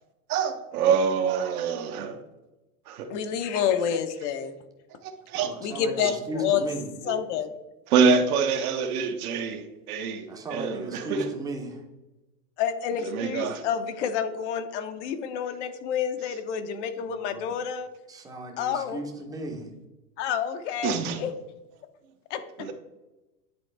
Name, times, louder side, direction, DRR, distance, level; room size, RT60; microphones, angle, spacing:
voice 1, 0.3-2.2 2.9-3.1 5.0-5.5 6.0-6.1 7.1-7.2 7.9-11.3 13.0-13.7 20.8-21.2 22.6-22.7, right 5 dB, 60° right, 1.1 m, -26 dB
voice 2, 3.1-4.5 5.6-6.6 7.1-7.5 12.6-17.9 18.6-19.0 20.2-21.3 22.3-22.7, left 8 dB, 45° left, 0.7 m, -29 dB
voice 3, 5.3-6.8 10.3-11.8 17.1-17.5 18.1-19.7, right 1 dB, 5° right, 0.7 m, -36 dB
9.9 x 4.1 x 3.3 m
hypercardioid pair, 135°, 50 cm